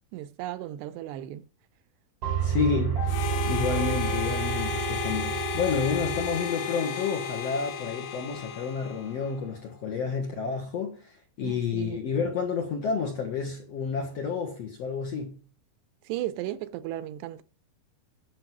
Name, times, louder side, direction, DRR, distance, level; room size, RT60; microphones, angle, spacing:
voice 1, 0.1-1.5 11.4-12.0 16.0-17.4, right 14 dB, 85° right, 2.9 m, -35 dB
sound 1, 2.2-6.4, right 8 dB, 35° right, 4.1 m, -30 dB
voice 2, 2.4-15.4, left 6 dB, 55° left, 1.8 m, -30 dB
Harmonica, 3.1-9.4, left 5 dB, 75° left, 3.1 m, -33 dB
10.5 x 6.3 x 6.0 m
omnidirectional pair, 4.8 m